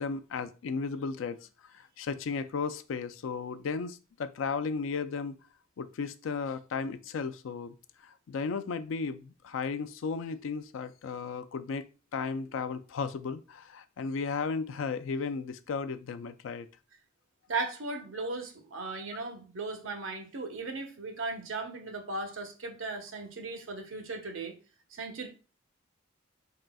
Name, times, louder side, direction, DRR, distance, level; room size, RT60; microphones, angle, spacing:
voice 1, 0.0-1.4 1.7-5.4 5.8-7.7 8.0-11.9 12.1-16.7, left 5 dB, 75° left, 0.4 m, -35 dB
voice 2, 17.5-24.5 24.9-25.3, right 3 dB, 85° right, 0.9 m, -37 dB
4.0 x 3.7 x 2.2 m
head